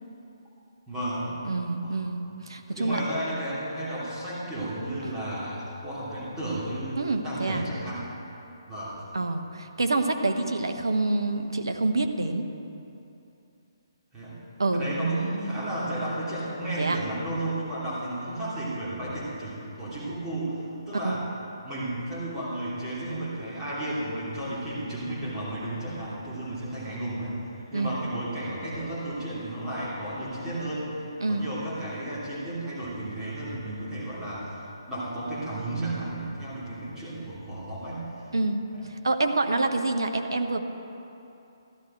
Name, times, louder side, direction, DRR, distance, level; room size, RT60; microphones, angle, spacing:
voice 1, 0.9-1.3 1.8-2.0 2.7-8.1 8.7-9.0 14.1-14.4 14.7-21.2 21.6-38.3 38.7-38.8, right 1 dB, 15° right, -10 dB, 3.1 m, -33 dB
voice 2, 1.4-3.0 5.0-5.1 7.0-7.6 9.1-12.4 14.6-14.9 16.8-17.0 21.0-21.2 27.7-28.1 31.2-31.5 38.3-38.6 38.9-40.6, right 2 dB, 70° right, 6 dB, 1.0 m, -27 dB
13.5 x 12.0 x 4.5 m, 2.8 s
figure-of-eight pair, 135°, 2 cm